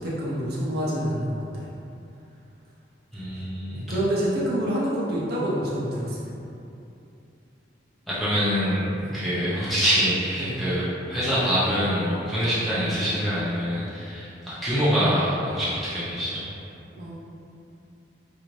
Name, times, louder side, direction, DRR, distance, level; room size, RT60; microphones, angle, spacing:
voice 1, 0.0-1.7 3.7-6.3 9.0-9.1 10.4-10.5 16.9-17.1, equal, 55° right, -7 dB, 0.5 m, -27 dB
voice 2, 3.1-3.8 8.1-8.9 9.1-16.4, equal, ahead, -11 dB, 0.5 m, -25 dB
2.6 x 2.5 x 3.0 m, 2.7 s
head